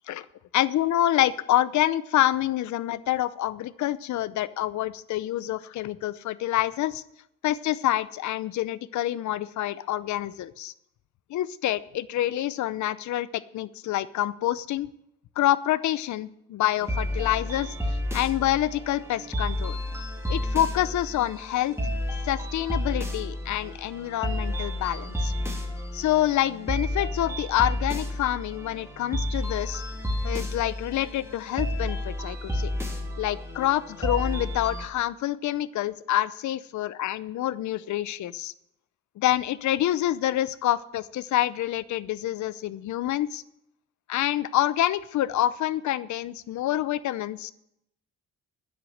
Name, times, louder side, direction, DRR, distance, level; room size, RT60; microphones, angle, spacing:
voice 1, 0.5-7.0 7.4-10.7 11.3-14.9 15.4-19.8 20.3-21.8 22.2-25.3 25.9-29.8 30.2-32.7 33.2-38.5 39.2-43.4 44.1-47.5, left 13 dB, 70° left, 16 dB, 0.7 m, -27 dB
sound 1, 16.8-34.8, left 1 dB, 10° right, 2.7 m, -31 dB
9.8 x 8.0 x 7.8 m, 0.76 s
cardioid pair, 90°, 30 cm